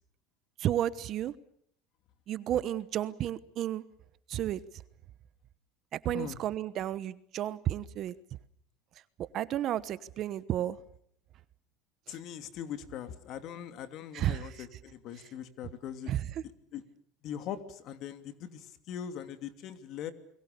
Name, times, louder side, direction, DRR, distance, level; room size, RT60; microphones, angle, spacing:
voice 1, 0.6-1.3 2.3-3.8 4.3-4.6 6.0-8.1 9.2-10.8 14.1-14.5 16.1-16.2, right 12 dB, 40° right, 1.1 m, -32 dB
voice 2, 6.0-6.4 12.1-16.1 16.7-16.8 17.2-20.1, left 9 dB, 50° left, 2.8 m, -41 dB
30.0 x 22.5 x 6.8 m
cardioid pair, 145°, 0 cm